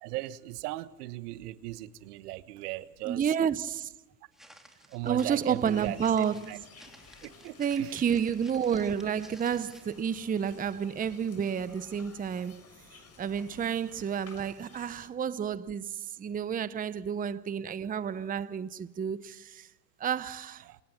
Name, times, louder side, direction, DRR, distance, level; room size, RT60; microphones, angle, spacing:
voice 1, 0.0-3.3 4.9-6.0 6.5-6.6 7.2-8.0 20.6-20.8, right 16 dB, 70° right, 1.3 m, -38 dB
voice 2, 3.1-3.9 5.0-6.7 7.6-12.6 13.2-19.7 20.0-20.7, right 7 dB, 15° right, 0.8 m, -30 dB
Walk footsteps, 4.3-10.0, equal, ahead, 3.2 m, -56 dB
sound 1, 5.6-15.1, left 4 dB, 30° left, 6.6 m, -54 dB
27.5 x 19.0 x 5.8 m
hypercardioid pair, 90°, 49 cm